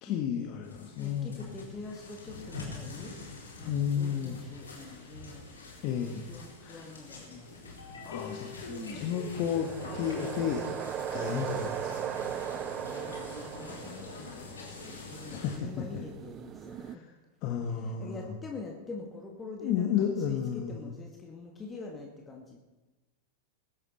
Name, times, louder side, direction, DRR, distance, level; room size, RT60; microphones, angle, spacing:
voice 1, 0.0-1.5 3.6-4.4 5.8-6.2 6.6-6.9 8.0-12.0 15.3-16.0 16.8-17.0 17.4-18.4 19.6-20.9, left 8 dB, 40° left, 3 dB, 1.5 m, -32 dB
sound 1, 0.6-15.6, left 3 dB, 70° left, 4.2 m, -44 dB
voice 2, 1.0-3.1 3.6-5.4 5.9-7.7 8.7-9.1 12.4-17.0 17.7-22.6, left 3 dB, 15° left, 0 dB, 2.0 m, -45 dB
sound 2, 9.4-17.0, right 10 dB, 30° right, 0.5 m, -38 dB
21.0 x 12.0 x 4.2 m, 1.2 s
figure-of-eight pair, 90°, 0 cm